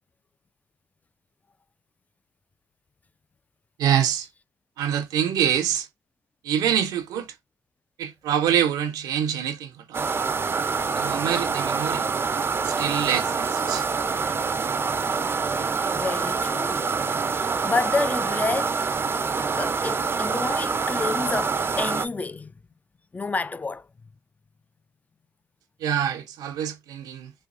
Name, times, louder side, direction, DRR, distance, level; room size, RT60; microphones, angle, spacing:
voice 1, 3.8-4.3 4.8-5.9 6.4-7.3 8.0-10.1 10.9-12.1 12.4-13.8 25.8-27.3, right 9 dB, 75° right, 0.6 m, -25 dB
sound 1, 9.9-22.1, right 5 dB, 35° right, 0.5 m, -26 dB
voice 2, 15.9-16.9 17.3-18.8 19.6-22.5 23.1-23.9, left 3 dB, 25° left, 0.4 m, -29 dB
4.3 x 2.2 x 2.5 m
supercardioid pair, 55°, 7 cm